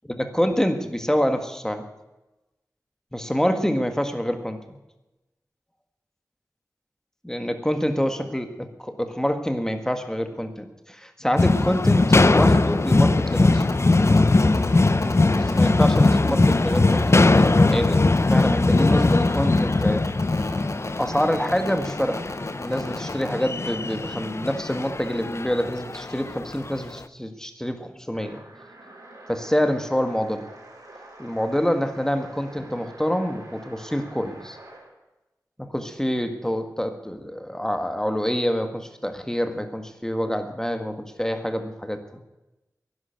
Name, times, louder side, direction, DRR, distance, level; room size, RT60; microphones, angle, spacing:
voice 1, 0.0-1.9 3.1-4.8 7.2-13.6 15.3-18.0 18.3-20.1 20.9-22.3 22.6-28.4 29.3-30.5 31.2-34.6 35.6-42.0, equal, 10° left, 7 dB, 1.7 m, -26 dB
sound 1, 11.4-26.7, left 2 dB, 45° left, 0.6 m, -20 dB
sound 2, 13.6-23.3, left 2 dB, 60° left, 1.8 m, -33 dB
sound 3, 28.1-34.9, right 2 dB, 65° right, 4.4 m, -46 dB
11.0 x 11.0 x 9.2 m, 1.0 s
wide cardioid pair, 65°, 6 cm